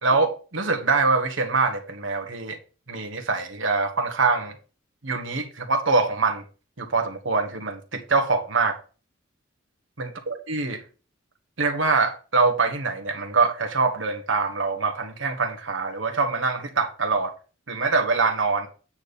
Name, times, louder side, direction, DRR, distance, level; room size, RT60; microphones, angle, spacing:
voice 1, 0.0-2.6 2.9-4.5 5.0-6.4 6.8-8.8 10.0-10.8 11.6-17.3 17.7-18.7, right 4 dB, 70° right, 1.4 m, -24 dB
8.8 x 4.2 x 5.0 m
head